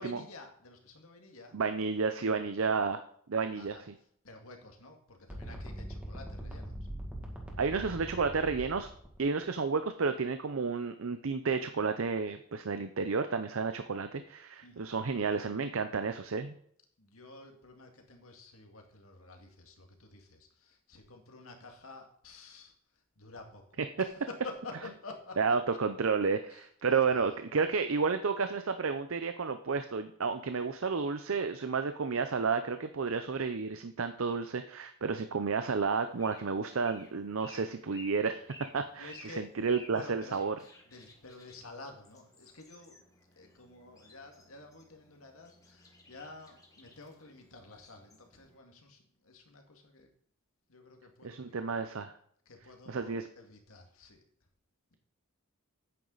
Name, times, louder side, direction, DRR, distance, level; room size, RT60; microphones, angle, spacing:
voice 1, 0.0-1.6 3.5-3.8 4.2-6.8 14.6-14.9 17.0-22.7 23.2-25.4 26.5-26.7 27.1-27.2 39.0-39.5 39.8-40.4 40.9-43.0 43.4-50.1 50.7-51.8 52.5-54.2, left 3 dB, 80° left, 3 dB, 2.0 m, -50 dB
voice 2, 1.5-3.0 3.3-3.9 7.6-8.9 9.2-16.5 25.4-38.5 38.7-40.6 51.2-52.1 52.9-53.3, right 5 dB, 70° right, 9 dB, 0.6 m, -31 dB
sound 1, 5.3-9.2, equal, 5° right, 1.9 m, -42 dB
sound 2, 35.9-48.6, left 2 dB, 15° left, 1.5 m, -57 dB
9.4 x 9.1 x 4.0 m, 0.64 s
head